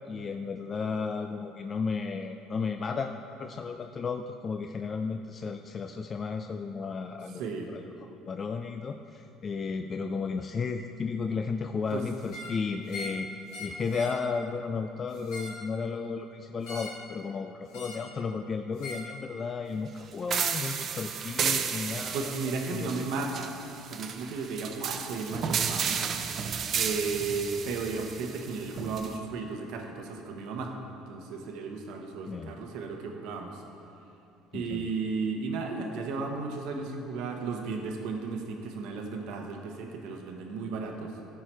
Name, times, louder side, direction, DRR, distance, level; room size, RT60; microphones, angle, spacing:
voice 1, 0.1-3.1 3.4-7.4 7.7-7.8 8.3-13.3 13.6-22.4 22.7-23.0 32.3-32.5 34.5-34.9, left 5 dB, 35° left, 6 dB, 0.4 m, -33 dB
voice 2, 7.3-7.7 11.9-12.0 22.1-26.0 26.7-33.6 34.5-41.2, right 4 dB, 75° right, 2 dB, 1.1 m, -34 dB
sound 1, 12.2-12.6 12.9-13.2 13.5-14.2 15.1-15.6 16.6-17.0 17.7-18.1 18.8-19.1 20.3-20.5, left 2 dB, 80° left, 1.9 m, -41 dB
sound 2, 20.3-29.2, right 7 dB, 45° right, 0.6 m, -33 dB
14.0 x 4.8 x 4.5 m, 2.8 s
supercardioid pair, 100°, 0 cm